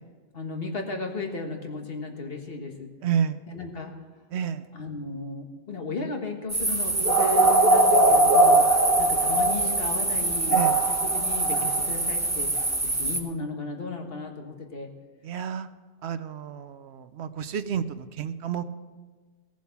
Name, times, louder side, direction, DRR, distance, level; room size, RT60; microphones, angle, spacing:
voice 1, 0.3-2.9 3.5-3.9 4.7-8.7 9.0-14.9, left 3 dB, 60° left, 3 dB, 1.7 m, -35 dB
voice 2, 3.0-3.4 4.3-4.6 10.5-10.8 15.2-15.7 16.0-18.6, right 8 dB, 75° right, 12 dB, 0.9 m, -30 dB
sound 1, 6.5-13.2, right 2 dB, 15° right, 1.2 m, -21 dB
18.0 x 7.4 x 5.9 m, 1.4 s
omnidirectional pair, 1.1 m